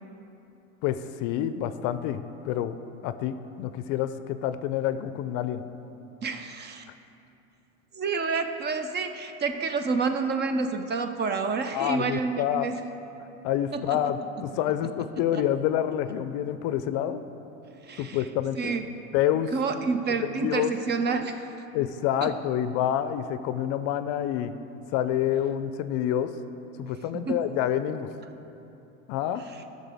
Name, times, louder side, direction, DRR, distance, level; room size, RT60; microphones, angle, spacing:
voice 1, 0.8-2.8 3.0-5.6 11.7-12.7 13.4-17.2 18.0-18.8 19.1-19.5 20.2-20.7 21.7-24.5 24.9-26.3 26.8-28.1 29.1-29.4, left 11 dB, 55° left, 12 dB, 0.5 m, -28 dB
voice 2, 6.2-6.9 7.9-12.8 13.7-14.0 15.3-15.4 17.8-18.3 18.5-18.9 19.5-21.5 22.2-22.3 27.2-27.4, right 4 dB, 30° right, 8 dB, 0.5 m, -29 dB
13.5 x 6.6 x 3.5 m, 2.9 s
supercardioid pair, 105°, 38 cm